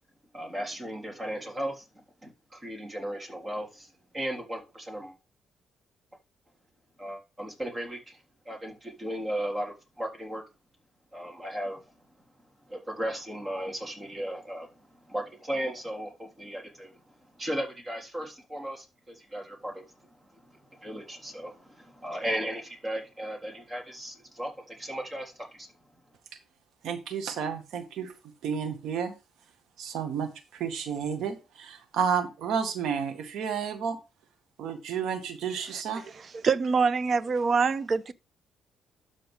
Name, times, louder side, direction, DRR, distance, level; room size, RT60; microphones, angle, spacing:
voice 1, 0.3-1.8 2.2-5.1 7.0-8.2 8.4-10.4 11.1-11.8 12.7-14.7 15.1-17.0 17.4-19.8 20.7-25.7, equal, 20° right, 3.3 m, -36 dB
voice 2, 26.8-28.1 28.4-29.1 29.8-34.0 34.6-36.0, right 7 dB, 80° right, 1.7 m, -31 dB
voice 3, 36.4-38.1, right 5 dB, 45° right, 0.7 m, -24 dB
12.5 x 5.0 x 3.6 m
cardioid pair, 90°, 0 cm